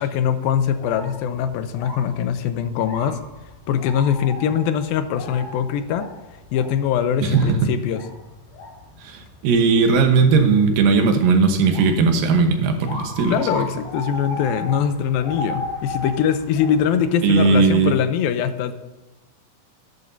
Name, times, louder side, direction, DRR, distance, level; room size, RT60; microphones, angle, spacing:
voice 1, 0.0-3.2 3.7-6.1 6.5-8.0 13.3-18.7, left 8 dB, 85° left, 10 dB, 2.6 m, -22 dB
sound 1, 0.6-18.0, left 1 dB, 60° left, 4.3 m, -36 dB
voice 2, 7.2-7.7 9.0-13.5 17.2-17.9, right 4 dB, 75° right, 5 dB, 2.8 m, -17 dB
13.0 x 11.0 x 2.7 m, 1.0 s
omnidirectional pair, 4.2 m